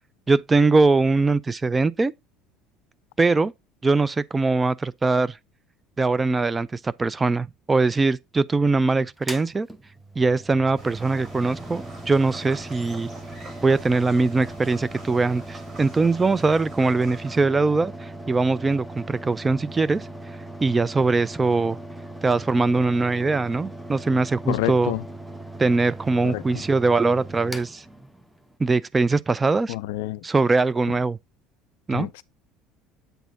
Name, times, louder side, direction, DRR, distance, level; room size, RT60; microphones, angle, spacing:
voice 1, 0.3-2.1 3.2-3.5 3.8-5.4 6.0-9.7 10.2-13.1 13.6-20.1 20.6-21.8 22.2-24.9 25.6-27.8 28.6-29.7 30.2-31.2 31.9-32.1, right 3 dB, 20° right, 0.4 m, -22 dB
Mechanical fan, 9.2-28.6, right 1 dB, 5° right, 0.9 m, -39 dB
sound 1, 10.7-17.4, right 2 dB, 35° right, 3.0 m, -45 dB
voice 2, 24.5-25.0 26.2-26.6 29.7-30.2 31.9-32.2, left 17 dB, 70° left, 0.3 m, -29 dB
8.1 x 4.1 x 3.9 m
figure-of-eight pair, 65°, 0 cm